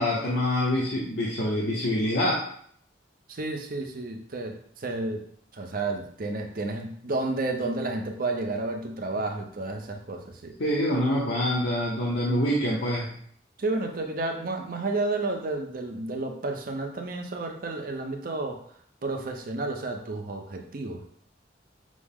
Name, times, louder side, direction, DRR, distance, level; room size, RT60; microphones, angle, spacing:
voice 1, 0.0-2.4 10.6-13.2, left 1 dB, 65° left, -5 dB, 0.8 m, -26 dB
voice 2, 3.3-5.2 5.5-10.5 13.6-18.6 19.0-21.0, right 2 dB, 50° right, 4 dB, 0.6 m, -31 dB
6.2 x 2.1 x 3.6 m, 0.62 s
head